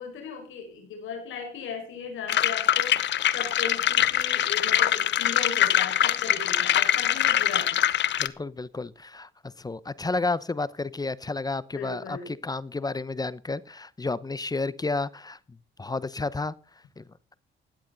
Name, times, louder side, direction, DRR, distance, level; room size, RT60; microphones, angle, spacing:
voice 1, 0.0-7.8 11.8-12.3, left 5 dB, 80° left, 4 dB, 5.7 m, -37 dB
sound 1, 2.3-8.3, left 11 dB, 65° left, 0.8 m, -23 dB
voice 2, 8.2-9.3 9.6-16.5 17.0-17.1, left 3 dB, 20° left, 19 dB, 0.8 m, -31 dB
16.5 x 10.5 x 4.0 m, 0.36 s
cardioid pair, 90°, 20 cm